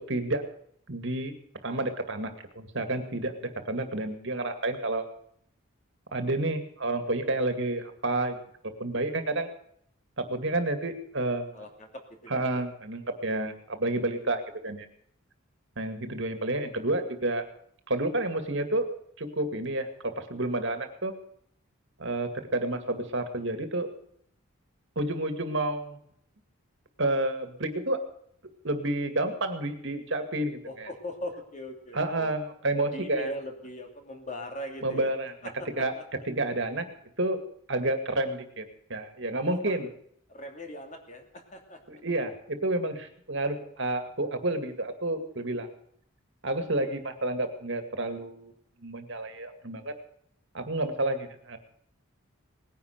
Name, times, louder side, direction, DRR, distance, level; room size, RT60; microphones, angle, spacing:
voice 1, 0.1-0.4 0.9-1.3 1.6-3.3 3.6-5.0 6.1-8.4 8.8-9.5 10.2-11.7 12.3-14.9 15.8-17.4 17.9-18.9 19.2-21.1 22.0-23.9 25.0-26.0 27.0-28.0 28.6-30.9 31.9-33.3 34.8-35.3 35.8-35.9 36.2-36.9 37.2-37.4 37.7-38.6 38.9-39.9 41.9-45.7 46.4-48.5 48.8-49.9 50.5-51.6, right 2 dB, 55° right, 7 dB, 2.2 m, -30 dB
voice 2, 11.5-11.9 12.2-12.6 30.7-32.3 32.9-35.1 35.6-36.0 39.4-39.8 40.3-41.2 41.5-41.8, equal, 35° left, 4 dB, 2.8 m, -40 dB
19.5 x 10.5 x 6.7 m, 0.66 s
head